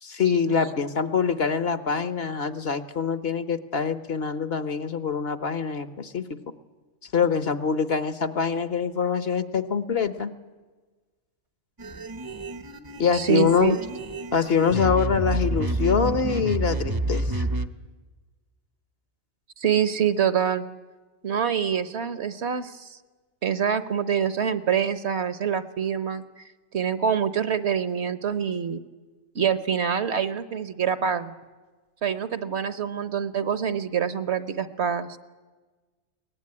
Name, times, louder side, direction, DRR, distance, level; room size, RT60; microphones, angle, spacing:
voice 1, 0.0-6.4 7.1-10.3 13.0-13.8 14.3-17.5, left 6 dB, 50° left, 12 dB, 1.1 m, -24 dB
sound 1, 11.8-17.7, right 2 dB, 20° right, 0.6 m, -29 dB
voice 2, 13.1-13.8 19.6-20.6 21.2-23.0 23.4-26.4 26.7-28.8 29.3-31.3 32.0-35.1, right 8 dB, 55° right, 13 dB, 1.1 m, -25 dB
22.5 x 18.5 x 9.7 m, 1.3 s
omnidirectional pair, 1.4 m